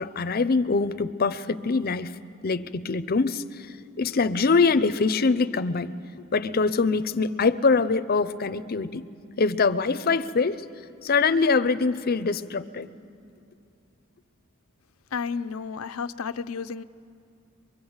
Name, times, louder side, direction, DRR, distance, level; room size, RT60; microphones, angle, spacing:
voice 1, 0.0-2.2 2.4-5.9 6.3-9.1 9.4-10.6 11.0-12.9, left 4 dB, 45° left, 12 dB, 0.6 m, -24 dB
voice 2, 15.1-16.8, left 5 dB, 90° left, 13 dB, 0.6 m, -32 dB
23.5 x 22.5 x 8.0 m, 2.5 s
head